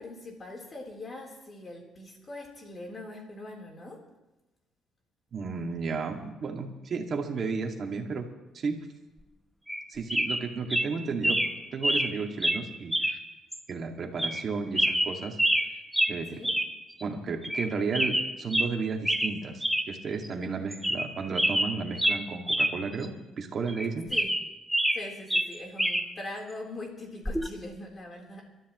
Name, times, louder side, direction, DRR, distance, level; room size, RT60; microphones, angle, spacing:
voice 1, 0.0-4.0 16.3-16.5 24.1-24.3 24.9-28.4, left 2 dB, 30° left, 0 dB, 3.9 m, -42 dB
voice 2, 5.3-8.3 8.5-8.8 9.9-13.2 13.7-15.4 16.1-16.2 17.0-24.1, right 4 dB, 45° right, 2 dB, 2.2 m, -33 dB
sound 1, 9.7-9.8 10.1-10.4 10.7-10.9 11.2-11.5 11.8-12.1 12.4-12.6 12.9-13.2 13.5-13.6 14.2-14.4 14.7-15.7 15.9-16.1 16.4-16.7 17.0-17.1 17.4-17.7 17.9-18.7 19.0-19.3 19.6-19.9 20.2-20.3 20.7-21.1 21.3-22.7 23.0-23.1 23.7-25.0 25.3-26.0 27.2-27.5, right 1 dB, ahead, 0.9 m, -26 dB
28.5 x 13.0 x 3.2 m, 1.0 s
cardioid pair, 120°, 0 cm